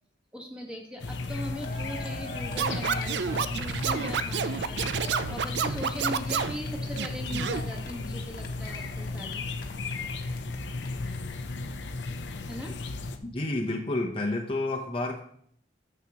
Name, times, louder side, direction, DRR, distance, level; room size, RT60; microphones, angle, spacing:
voice 1, 0.3-9.5 12.5-12.7, equal, 5° right, 0 dB, 1.4 m, -39 dB
sound 1, 1.0-13.2, left 3 dB, 80° left, 0.6 m, -35 dB
Cheering, 1.1-1.2 1.4-10.6 10.8-10.9 11.1-11.2, left 2 dB, 55° left, 1.1 m, -44 dB
Scratching (performance technique), 2.6-6.6 7.0-7.6, right 7 dB, 70° right, 0.4 m, -29 dB
voice 2, 13.2-15.2, left 2 dB, 30° left, 1 dB, 0.8 m, -30 dB
9.6 x 7.3 x 2.9 m, 0.64 s
head